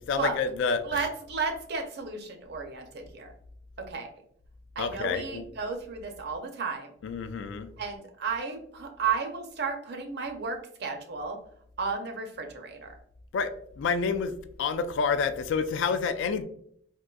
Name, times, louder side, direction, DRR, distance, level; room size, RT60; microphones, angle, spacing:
voice 1, 0.1-1.0 4.8-5.4 7.0-7.7 13.3-13.5 13.8-16.4, left 5 dB, 75° left, 10 dB, 0.3 m, -28 dB
voice 2, 0.8-3.3 3.9-4.1 4.8-6.9 7.8-11.4 11.8-12.9, right 5 dB, 60° right, 5 dB, 0.5 m, -33 dB
3.7 x 2.5 x 2.2 m, 0.66 s
head